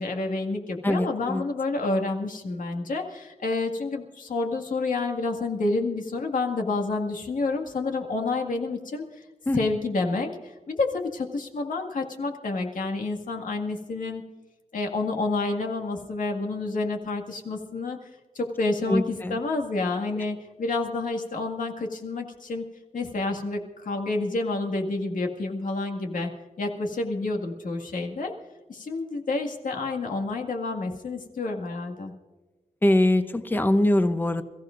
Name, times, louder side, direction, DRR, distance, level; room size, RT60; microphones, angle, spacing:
voice 1, 0.0-9.2 9.5-14.2 14.7-22.6 22.9-26.3 26.6-28.3 28.7-32.1, left 3 dB, 75° left, 3 dB, 1.9 m, -29 dB
voice 2, 0.8-1.4 9.5-9.6 18.9-19.4 32.8-34.4, left 1 dB, 15° left, 9 dB, 0.8 m, -22 dB
28.0 x 15.5 x 2.6 m, 1.2 s
wide cardioid pair, 165°, 14 cm